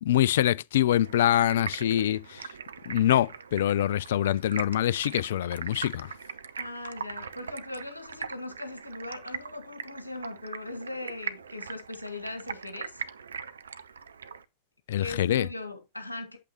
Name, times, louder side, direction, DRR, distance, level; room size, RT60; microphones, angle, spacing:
voice 1, 0.0-2.6 2.9-6.1 14.9-15.5, left 12 dB, 60° left, 0.4 m, -25 dB
Stream, 1.0-14.4, right 6 dB, 70° right, 0.5 m, -41 dB
voice 2, 6.5-13.0 15.0-16.4, left 2 dB, 85° left, 1.5 m, -39 dB
8.4 x 7.6 x 2.9 m
figure-of-eight pair, 90°, 0 cm